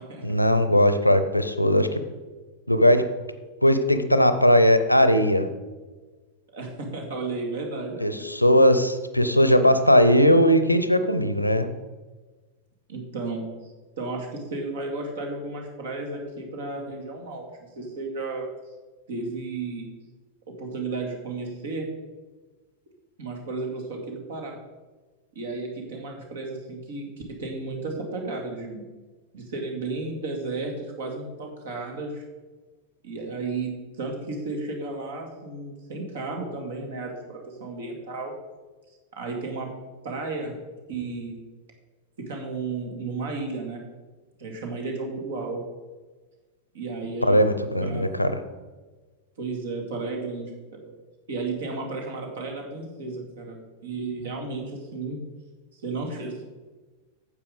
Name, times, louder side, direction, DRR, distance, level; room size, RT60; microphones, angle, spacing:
voice 1, 0.2-1.9 2.7-3.1 3.6-5.5 8.0-11.7 47.2-48.3, equal, 90° left, 11 dB, 0.6 m, -19 dB
voice 2, 6.5-8.1 12.9-13.7 14.0-17.4 17.8-18.5 19.1-19.9 20.5-21.9 23.2-24.6 25.3-27.1 27.4-28.9 29.3-32.2 33.0-38.3 39.2-39.7 40.0-40.6 40.9-41.4 42.2-43.8 44.4-45.6 46.7-47.4 47.8-48.2 49.4-50.9 51.3-55.2 55.7-56.4, right 3 dB, 60° right, 2 dB, 2.2 m, -33 dB
9.7 x 7.2 x 5.1 m, 1.3 s
figure-of-eight pair, 90°, 0 cm